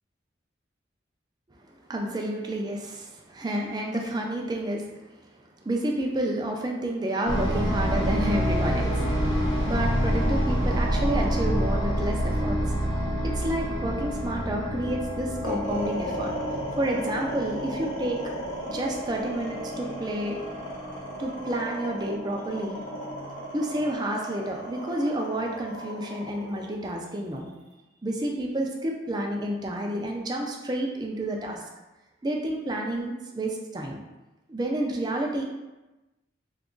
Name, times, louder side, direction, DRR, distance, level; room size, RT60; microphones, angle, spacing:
voice 1, 1.9-5.3 5.6-9.0 9.7-12.6 13.2-16.3 16.7-18.2 18.7-20.4 21.2-22.8 23.5-27.5 28.0-31.6 32.2-34.0 34.5-35.4, right 1 dB, 20° right, 0 dB, 0.4 m, -30 dB
sound 1, 7.3-23.9, equal, 20° left, 0.7 m, -29 dB
sound 2, 15.4-27.7, equal, 45° left, 1.1 m, -35 dB
2.9 x 2.4 x 3.7 m, 1.1 s
head